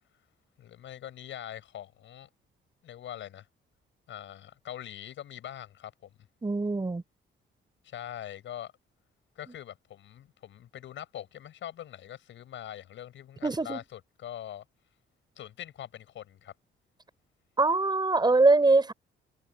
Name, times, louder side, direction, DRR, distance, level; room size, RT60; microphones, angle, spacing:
voice 1, 0.6-2.3 2.8-3.5 4.1-6.1 7.8-8.7 9.4-14.6 15.4-16.5, left 11 dB, 70° left, 7.0 m, -43 dB
voice 2, 6.4-7.0 13.4-13.8 17.6-18.9, right 3 dB, 20° right, 5.1 m, -23 dB
cardioid pair, 90°, 20 cm